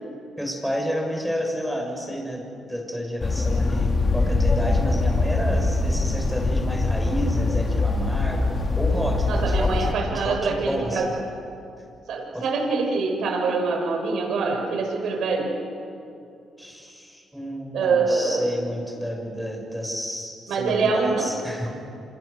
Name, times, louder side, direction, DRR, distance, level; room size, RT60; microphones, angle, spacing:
voice 1, 0.4-2.4 2.7-11.1 12.3-12.5 16.6-21.7, equal, ahead, 1 dB, 6.2 m, -30 dB
sound 1, 3.2-9.9, left 3 dB, 40° left, 3.1 m, -23 dB
voice 2, 9.3-11.1 12.1-15.5 17.7-18.5 20.5-21.3, right 4 dB, 75° right, 2 dB, 6.9 m, -24 dB
29.0 x 27.0 x 6.8 m, 2.6 s
cardioid pair, 90°, 0 cm